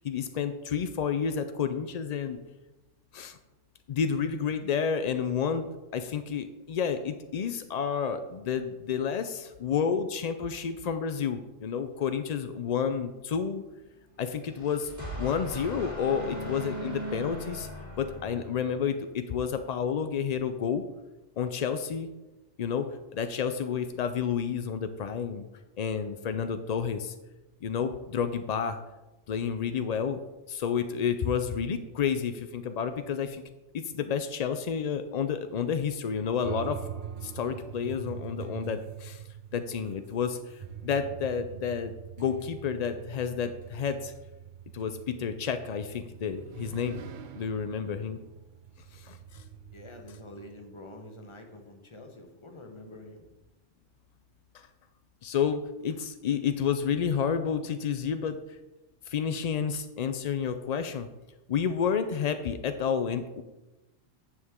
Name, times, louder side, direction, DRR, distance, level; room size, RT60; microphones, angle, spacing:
voice 1, 0.0-2.4 3.1-3.4 3.9-13.6 14.2-14.9 15.2-17.7 18.0-20.8 21.4-22.1 22.6-22.9 23.1-25.5 25.8-27.1 27.6-28.8 29.3-33.4 33.7-36.8 37.2-39.2 39.5-41.9 42.2-44.1 44.7-47.0 47.4-48.2 48.9-49.4 55.2-58.4 59.1-61.1 61.5-63.4, left 7 dB, 75° left, 9 dB, 0.3 m, -30 dB
sound 1, 14.3-18.9, equal, 15° right, 2.5 m, -39 dB
sound 2, 36.4-50.6, right 9 dB, 60° right, 0.5 m, -44 dB
voice 2, 49.7-53.3, left 1 dB, 25° left, 4 dB, 1.0 m, -47 dB
9.8 x 6.2 x 3.6 m, 1.0 s
omnidirectional pair, 1.2 m